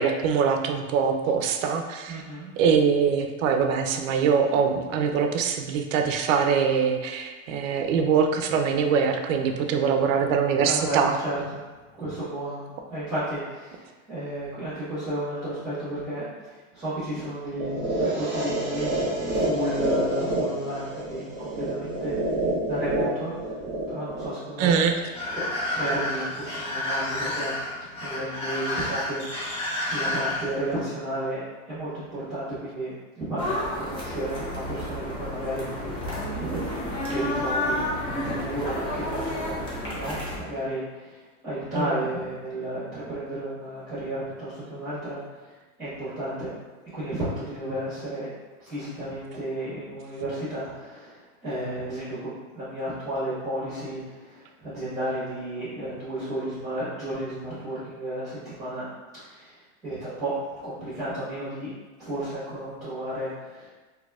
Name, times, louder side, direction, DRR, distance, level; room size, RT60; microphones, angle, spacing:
voice 1, 0.0-2.2 2.6-11.2 24.6-25.0 41.7-42.0, right 6 dB, 80° right, 5 dB, 0.5 m, -23 dB
voice 2, 2.1-2.5 10.6-11.6 12.0-18.9 19.3-22.3 22.6-23.5 23.9-24.7 25.3-25.5 25.7-27.6 28.0-29.6 29.9-39.5 39.9-46.5 46.9-48.3 48.6-58.8 59.1-61.7 62.0-63.7, right 1 dB, 10° right, -13 dB, 1.2 m, -33 dB
sound 1, 17.6-25.6, right 1 dB, 25° right, 0.9 m, -28 dB
sound 2, 25.1-30.7, left 1 dB, 45° left, 1.5 m, -30 dB
sound 3, 33.4-40.4, left 1 dB, 15° left, 0.5 m, -30 dB
4.1 x 2.8 x 2.3 m, 1.3 s
supercardioid pair, 160°, 39 cm